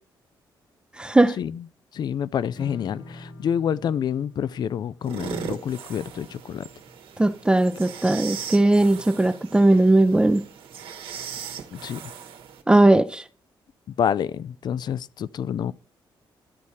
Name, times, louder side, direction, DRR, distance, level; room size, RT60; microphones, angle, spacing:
voice 1, 1.0-1.4 7.2-10.4 12.7-13.2, right 2 dB, 10° right, 0.5 m, -18 dB
voice 2, 1.9-6.6 11.7-12.0 13.9-15.7, left 8 dB, 55° left, 0.4 m, -28 dB
Strum, 2.6-8.8, left 1 dB, 85° left, 3.9 m, -47 dB
sound 1, 5.0-12.6, right 7 dB, 85° right, 1.2 m, -38 dB
12.0 x 4.2 x 4.8 m
cardioid pair, 125°, 9 cm